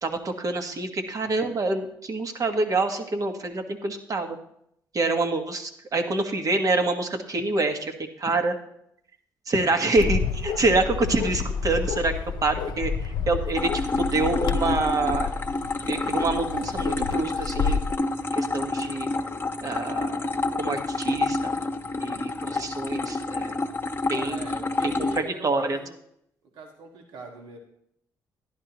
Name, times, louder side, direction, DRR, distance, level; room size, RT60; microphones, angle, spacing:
voice 1, 0.0-4.4 4.9-8.6 9.5-12.1 12.4-15.4 15.9-17.8 18.3-19.1 19.6-20.3 20.6-21.5 22.0-23.6 24.1-24.4 24.8-25.8, right 3 dB, 45° right, 5 dB, 1.5 m, -26 dB
Bark, 10.0-17.9, left 6 dB, 65° left, 0.6 m, -30 dB
sound 1, 13.5-25.2, left 3 dB, 30° left, 1.0 m, -28 dB
voice 2, 24.1-25.9 26.5-27.6, right 2 dB, 80° right, 1 dB, 1.7 m, -42 dB
11.0 x 11.0 x 3.0 m, 0.73 s
supercardioid pair, 65°, 8 cm